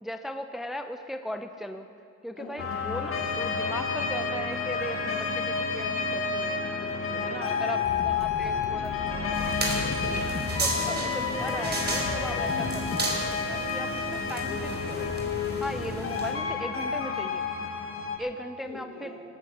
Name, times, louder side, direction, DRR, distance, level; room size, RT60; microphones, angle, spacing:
voice 1, 0.0-1.9 2.2-6.6 7.2-8.9 9.2-9.6 10.1-10.2 10.6-15.1 15.6-17.4 18.2-19.1, equal, ahead, 7 dB, 0.7 m, -38 dB
sound 1, 2.6-18.2, left 5 dB, 45° left, 2.1 m, -30 dB
voice 2, 6.8-7.8 8.1-9.3 9.6-10.2 17.0-17.1 18.6-19.2, left 2 dB, 60° left, -1 dB, 5.0 m, -44 dB
sound 2, 7.8-13.0, left 4 dB, 30° left, 1.5 m, -35 dB
sound 3, 9.3-16.3, right 2 dB, 35° right, 4.2 m, -34 dB
18.0 x 12.5 x 6.2 m, 2.5 s
cardioid pair, 90°, 30 cm